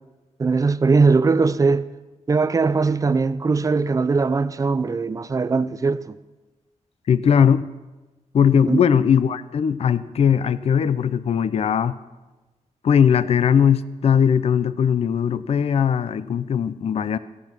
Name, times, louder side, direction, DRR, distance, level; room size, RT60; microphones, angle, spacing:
voice 1, 0.4-1.9 2.3-6.2 8.7-8.8, right 4 dB, 25° right, 0.4 m, -20 dB
voice 2, 7.1-7.6 8.3-12.0 12.8-17.2, left 7 dB, 50° left, 0.4 m, -19 dB
16.0 x 8.6 x 6.0 m
wide cardioid pair, 175°, 13 cm